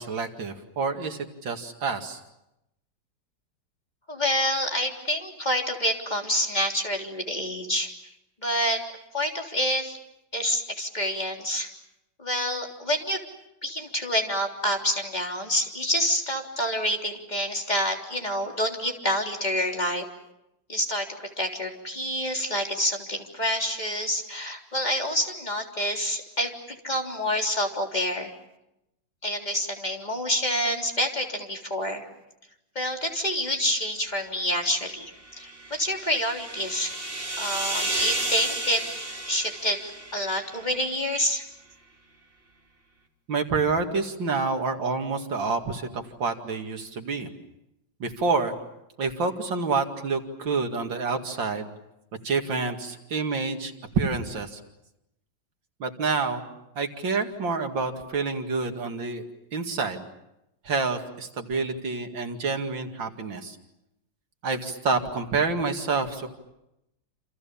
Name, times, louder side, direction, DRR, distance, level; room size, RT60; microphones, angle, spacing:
voice 1, 0.0-2.2 43.3-47.3 48.0-48.5 49.0-51.7 52.2-54.6 55.8-56.4 56.8-59.2 59.5-60.0 60.6-63.6 64.4-66.3, right 4 dB, 90° right, 5 dB, 3.0 m, -28 dB
voice 2, 4.1-7.9 8.4-8.8 9.1-10.0 10.3-11.7 12.2-13.2 13.6-20.0 20.7-28.3 29.2-32.1 32.8-36.9 37.4-38.8 39.3-39.8 40.1-41.4, equal, 20° left, 1 dB, 3.7 m, -27 dB
sound 1, 35.1-40.7, right 2 dB, 30° right, 3.9 m, -32 dB
28.5 x 28.0 x 7.1 m, 0.87 s
omnidirectional pair, 2.0 m